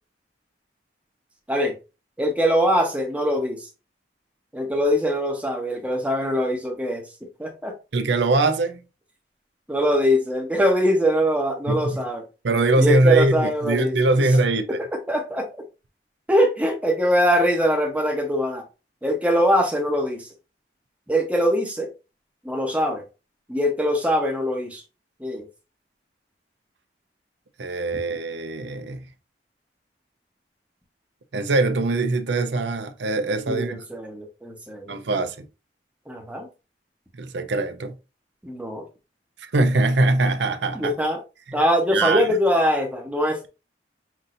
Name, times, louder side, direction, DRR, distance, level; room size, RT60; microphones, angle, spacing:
voice 1, 2.2-3.6 4.5-7.0 7.4-7.7 9.7-12.2 12.8-13.9 15.1-15.5 16.3-18.6 19.0-20.3 21.1-21.9 22.4-23.0 23.5-24.8 25.2-25.5 33.5-35.0 36.1-36.5 38.4-38.8 40.7-41.2 41.5-43.5, equal, 10° right, 1.0 m, -22 dB
voice 2, 7.9-8.8 11.7-12.0 12.4-14.8 27.6-29.0 31.3-33.8 34.9-35.5 37.2-38.0 39.5-40.9 41.5-41.6 41.9-42.3, right 2 dB, 85° right, 0.6 m, -22 dB
5.9 x 2.7 x 2.6 m
head